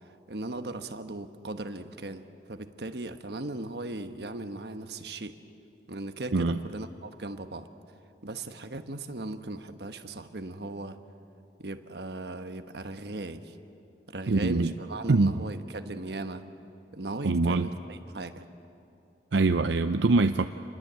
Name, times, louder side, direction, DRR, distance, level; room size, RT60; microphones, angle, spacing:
voice 1, 0.3-5.4 5.9-7.7 8.2-11.0 11.6-13.6 14.1-16.4 16.9-18.4, right 2 dB, 65° right, 8 dB, 1.2 m, -38 dB
voice 2, 14.3-14.7 15.1-15.3 17.2-17.7 19.3-20.5, right 3 dB, 90° right, 8 dB, 0.6 m, -23 dB
27.5 x 21.0 x 8.2 m, 2.6 s
head